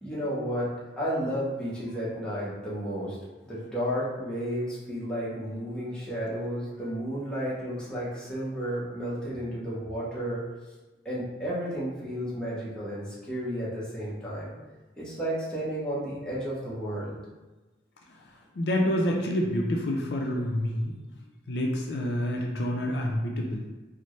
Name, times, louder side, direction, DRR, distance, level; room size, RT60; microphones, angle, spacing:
voice 1, 0.0-3.2 3.4-10.4 11.0-14.5 15.0-17.2, equal, 5° left, -8 dB, 0.8 m, -32 dB
voice 2, 18.6-20.9 21.5-23.6, equal, 65° left, 0 dB, 0.5 m, -27 dB
4.2 x 2.0 x 3.1 m, 1.2 s
head